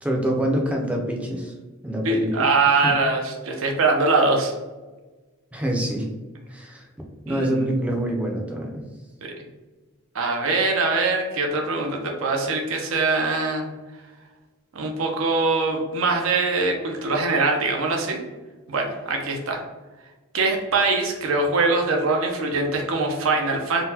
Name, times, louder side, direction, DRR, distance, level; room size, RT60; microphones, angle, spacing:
voice 1, 0.0-1.5 1.8-2.5 2.8-2.9 5.5-6.1 6.5-6.8 7.3-8.8, right 1 dB, 5° right, 0 dB, 0.4 m, -25 dB
voice 2, 2.0-4.5 7.3-7.5 9.2-9.3 10.1-13.7 14.7-18.2 18.7-19.6 20.3-23.8, right 3 dB, 80° right, 2 dB, 0.5 m, -22 dB
3.8 x 2.0 x 2.7 m, 1.3 s
head